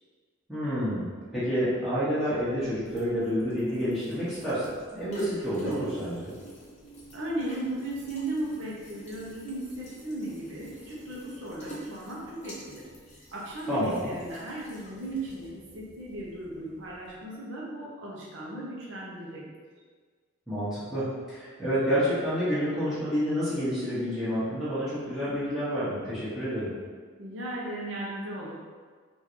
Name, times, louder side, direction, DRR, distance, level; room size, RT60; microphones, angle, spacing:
voice 1, 0.5-6.3 13.7-14.1 20.5-26.7, equal, ahead, -14 dB, 1.0 m, -29 dB
sound 1, 2.2-17.3, right 1 dB, 35° left, 0.6 m, -48 dB
voice 2, 7.1-12.9 13.3-19.4 27.2-28.6, right 1 dB, 70° right, -5 dB, 0.8 m, -36 dB
3.6 x 2.6 x 3.0 m, 1.5 s
head